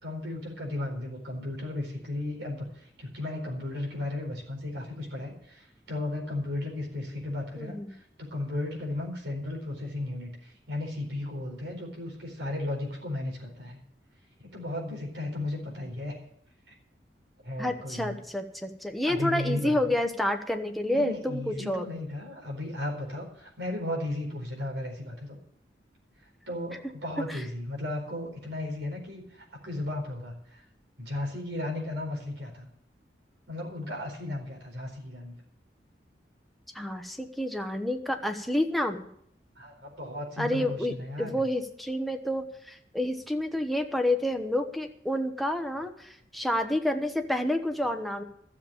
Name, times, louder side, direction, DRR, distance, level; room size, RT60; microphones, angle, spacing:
voice 1, 0.0-13.8 14.4-16.2 16.7-16.8 17.4-18.2 19.0-19.9 20.9-25.4 26.5-30.6 31.0-32.7 33.5-35.3 39.6-41.4, left 1 dB, 85° right, 0 dB, 4.4 m, -35 dB
voice 2, 7.6-7.9 17.6-21.9 27.3-27.4 36.7-39.1 40.4-48.2, left 1 dB, ahead, 4 dB, 1.1 m, -29 dB
13.5 x 7.3 x 8.7 m, 0.69 s
head